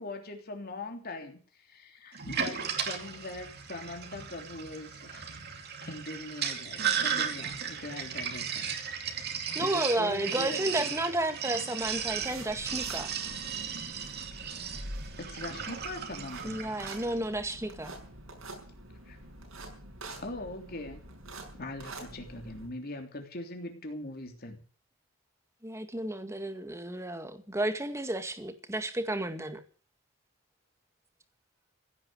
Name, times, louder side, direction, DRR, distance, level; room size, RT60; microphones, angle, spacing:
voice 1, 0.0-5.3 5.6-8.7 9.1-9.3 9.6-10.9 15.2-16.6 19.1-19.2 20.2-21.0 21.5-24.6, left 2 dB, 50° left, 3.2 m, -41 dB
Sink (filling or washing), 2.1-17.2, right 7 dB, 50° right, 2.5 m, -35 dB
voice 2, 9.5-13.1 16.4-17.9 25.6-29.6, right 1 dB, 15° right, 2.0 m, -32 dB
sound 1, 11.8-22.7, right 1 dB, 85° right, 6.0 m, -46 dB
16.5 x 9.7 x 8.1 m
head